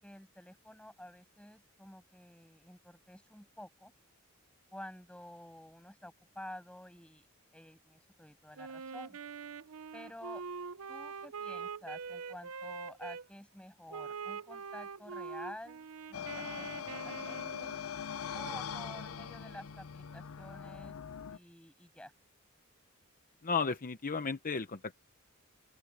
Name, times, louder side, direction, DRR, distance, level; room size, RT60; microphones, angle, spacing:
voice 1, 0.0-3.9 4.7-7.3 7.5-9.2 9.9-10.4 10.9-17.7 18.3-21.0 21.3-22.1, left 1 dB, 5° left, 7.1 m, -50 dB
Wind instrument woodwind instrument, 8.6-13.3 13.9-17.8, right 5 dB, 75° right, 0.7 m, -44 dB
sound 1, 16.1-21.4, left 7 dB, 75° left, 0.6 m, -42 dB
voice 2, 23.4-24.9, left 5 dB, 40° left, 0.8 m, -34 dB
open air
head